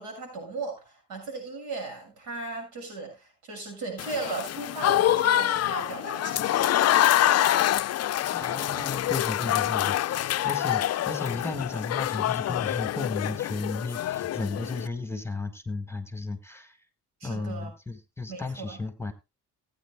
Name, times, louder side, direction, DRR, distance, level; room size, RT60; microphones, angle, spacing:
voice 1, 0.0-6.6 17.2-17.7 18.3-18.8, right 3 dB, 90° right, 7.0 m, -37 dB
Applause / Crowd, 4.0-14.9, left 12 dB, 45° left, 0.5 m, -26 dB
voice 2, 8.3-16.8 17.2-19.1, left 3 dB, 5° left, 1.6 m, -34 dB
18.5 x 9.1 x 2.2 m
supercardioid pair, 70°, 37 cm